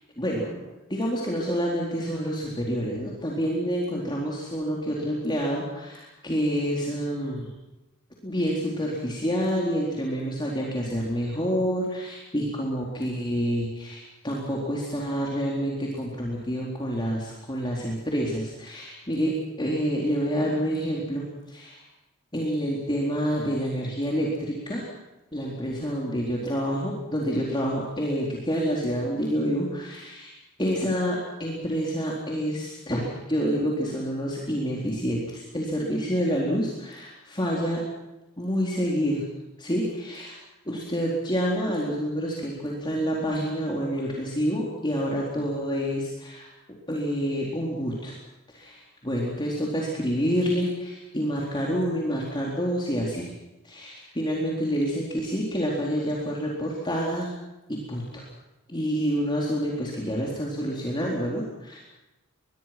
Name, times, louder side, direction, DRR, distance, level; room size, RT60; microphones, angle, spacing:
voice 1, 0.2-7.5 8.2-21.8 22.3-24.8 25.3-30.3 30.6-37.8 38.4-39.3 39.6-40.3 40.7-46.5 46.9-48.2 48.5-53.3 53.6-57.3 57.7-58.2 58.7-61.8, equal, 20° left, -3 dB, 4.1 m, -28 dB
24.0 x 22.5 x 6.1 m, 1.0 s
head